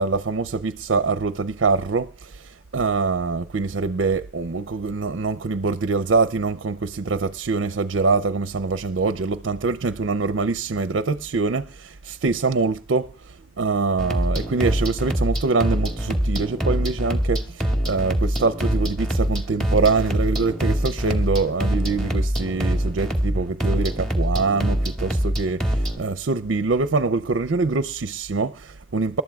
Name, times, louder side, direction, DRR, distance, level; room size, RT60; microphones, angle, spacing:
voice 1, 0.0-29.2, right 4 dB, 60° right, 0.5 m, -24 dB
sound 1, 14.0-26.0, equal, ahead, 2.2 m, -24 dB
27.5 x 12.5 x 2.4 m
head